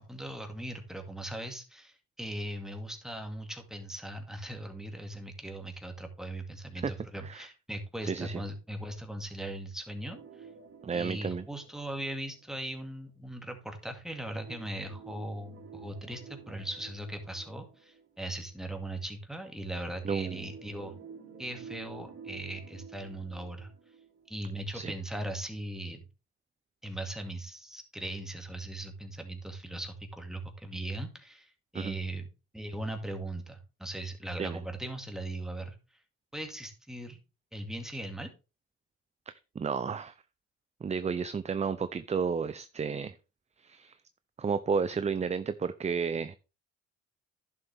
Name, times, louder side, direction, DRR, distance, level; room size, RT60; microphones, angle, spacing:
voice 1, 0.0-10.5 10.9-20.9 21.4-23.7 24.3-26.0 26.8-32.3 32.5-35.8 36.3-37.2 37.5-38.3, right 1 dB, ahead, 4 dB, 2.2 m, -39 dB
voice 2, 8.0-8.4 10.8-11.4 20.0-20.5 24.7-24.9 31.7-32.0 34.4-34.6 39.3-40.1 40.8-43.2 43.6-44.0 44.4-46.4, right 5 dB, 25° right, 13 dB, 0.5 m, -32 dB
sound 1, 10.0-12.7 14.2-18.6 19.8-24.7 25.1-25.2 25.8-25.9, right 6 dB, 50° right, 3.8 m, -51 dB
11.0 x 7.1 x 3.5 m, 0.31 s
cardioid pair, 90°, 30 cm